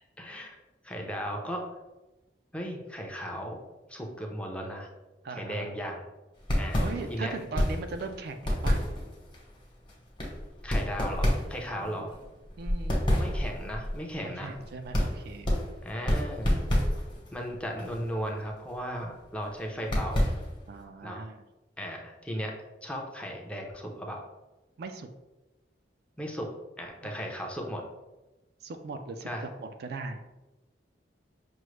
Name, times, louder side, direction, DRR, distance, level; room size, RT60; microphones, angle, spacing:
voice 1, 0.2-0.6 0.8-1.6 2.5-3.6 3.9-4.9 5.3-6.0 6.6-6.8 7.1-7.3 10.6-12.1 13.1-14.5 15.8-16.6 17.3-20.3 21.0-21.3 21.8-22.5 22.8-24.2 26.2-26.5 26.8-27.8 29.2-29.4, equal, 5° left, 0 dB, 0.5 m, -36 dB
voice 2, 5.2-5.7 6.8-8.8 11.8-12.1 12.6-13.0 14.2-15.5 20.7-21.4 24.8-25.1 27.0-27.2 28.6-30.2, right 3 dB, 60° right, 6 dB, 0.3 m, -39 dB
sound 1, 6.4-20.8, equal, 30° left, 1.0 m, -30 dB
6.0 x 2.0 x 3.1 m, 1.1 s
head